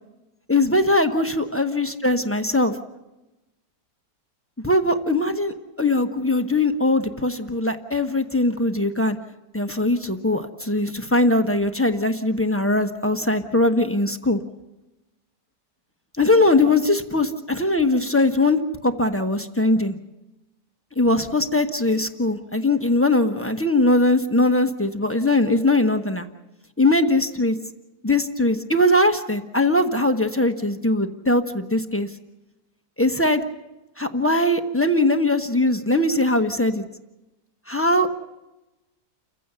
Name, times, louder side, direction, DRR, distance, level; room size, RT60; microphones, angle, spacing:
voice 1, 0.5-2.8 4.6-9.2 9.5-14.4 16.2-20.0 21.0-26.3 26.8-27.6 28.0-32.1 33.0-33.4 34.0-36.8 37.7-38.1, left 2 dB, 10° left, 7 dB, 0.8 m, -21 dB
29.5 x 15.5 x 6.9 m, 1.0 s
omnidirectional pair, 1.9 m